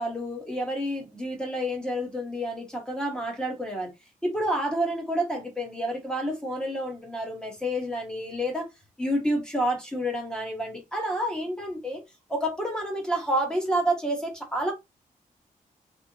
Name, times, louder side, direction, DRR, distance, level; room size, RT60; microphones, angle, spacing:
voice 1, 0.0-3.9 4.2-8.7 9.0-12.0 12.3-14.7, equal, 5° left, 1.0 m, -29 dB
3.4 x 3.0 x 2.7 m
wide cardioid pair, 175°, 15 cm